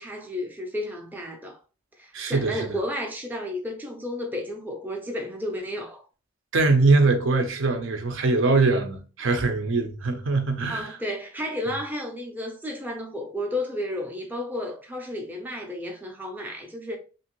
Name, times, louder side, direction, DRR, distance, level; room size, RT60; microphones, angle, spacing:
voice 1, 0.0-1.6 2.0-6.0 10.7-17.0, left 1 dB, 10° right, 0.4 m, -32 dB
voice 2, 2.1-2.8 6.5-11.0, right 3 dB, 60° right, 0.5 m, -22 dB
3.0 x 2.6 x 2.9 m
head